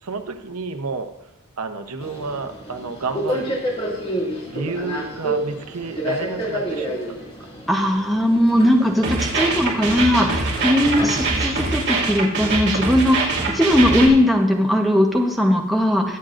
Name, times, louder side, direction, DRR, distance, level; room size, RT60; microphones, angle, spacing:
voice 1, 0.0-1.1 1.6-3.6 4.5-7.3, right 3 dB, 80° right, 7 dB, 0.9 m, -30 dB
Subway metro underground, 2.0-11.8, equal, 25° left, 2.1 m, -30 dB
voice 2, 7.7-16.2, left 1 dB, ahead, 0 dB, 1.0 m, -19 dB
sound 1, 9.0-14.1, right 3 dB, 55° right, 2.4 m, -23 dB
22.0 x 7.5 x 2.6 m, 0.86 s
head